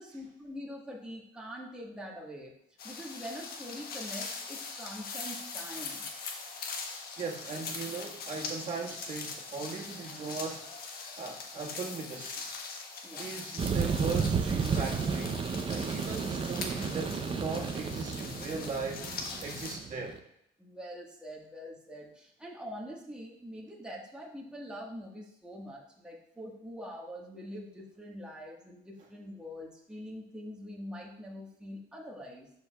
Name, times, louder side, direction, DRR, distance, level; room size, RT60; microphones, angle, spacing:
voice 1, 0.0-2.5 2.8-6.1 13.0-13.5 20.6-32.5, equal, 5° right, -3 dB, 1.4 m, -44 dB
sound 1, 2.8-19.8, left 4 dB, 65° left, 1.2 m, -42 dB
voice 2, 7.2-10.7 11.2-12.5 13.2-19.1 19.4-20.2, right 4 dB, 50° right, -2 dB, 1.6 m, -38 dB
sound 2, 13.6-20.2, right 5 dB, 30° right, 0.6 m, -32 dB
12.0 x 4.8 x 2.3 m, 0.76 s
cardioid pair, 110°, 17 cm